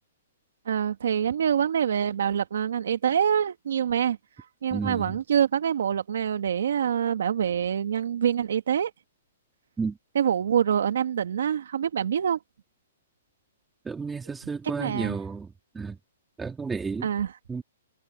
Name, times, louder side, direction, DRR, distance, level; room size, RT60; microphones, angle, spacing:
voice 1, 0.7-4.2 4.6-8.9 10.1-12.4 14.8-15.2 17.0-17.3, right 8 dB, 70° right, 1.9 m, -25 dB
voice 2, 4.7-5.1 9.8-9.9 13.8-15.5 15.7-16.0 16.4-17.1 17.5-17.6, right 5 dB, 10° right, 3.2 m, -31 dB
hypercardioid pair, 150°, 0 cm